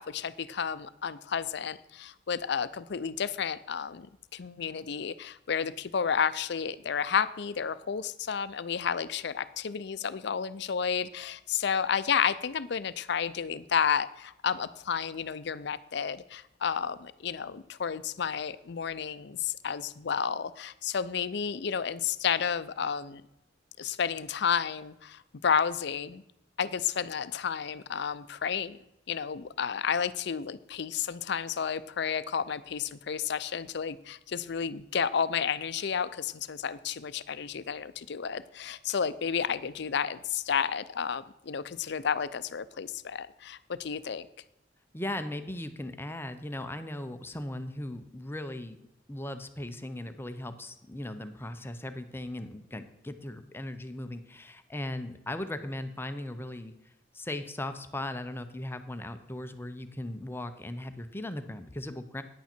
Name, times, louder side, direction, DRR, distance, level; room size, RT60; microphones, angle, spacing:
voice 1, 0.0-23.2 23.8-26.2 26.6-28.8 29.1-44.3, left 7 dB, 65° left, 14 dB, 0.5 m, -31 dB
voice 2, 44.9-48.8 49.1-56.7 57.1-62.2, left 1 dB, 15° left, 9 dB, 0.7 m, -38 dB
10.0 x 8.4 x 4.4 m, 0.84 s
head